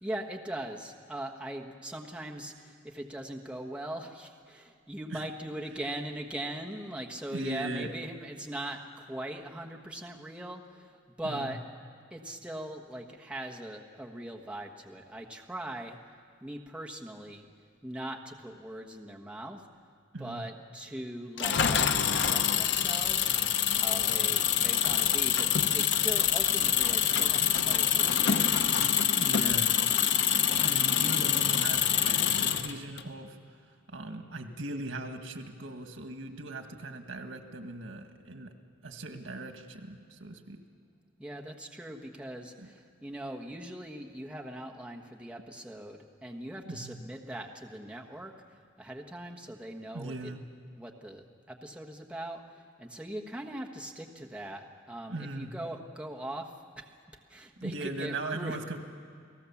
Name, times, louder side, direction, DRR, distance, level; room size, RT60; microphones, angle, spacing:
voice 1, 0.0-11.6 12.1-16.0 16.4-17.5 17.8-19.6 20.2-23.4 23.8-28.6 41.2-50.4 50.8-52.4 52.8-56.9 57.3-58.6, right 1 dB, 5° right, 0 dB, 1.3 m, -40 dB
voice 2, 7.3-7.9 11.2-11.6 20.1-20.5 24.1-24.7 29.1-29.8 30.2-33.4 33.9-38.5 38.8-40.6 42.6-42.7 46.7-47.0 49.9-50.4 55.1-55.5 57.6-58.8, right 2 dB, 90° right, 6 dB, 1.8 m, -39 dB
Engine, 21.4-33.0, left 9 dB, 65° left, 0.9 m, -26 dB
29.5 x 18.0 x 7.2 m, 2.2 s
head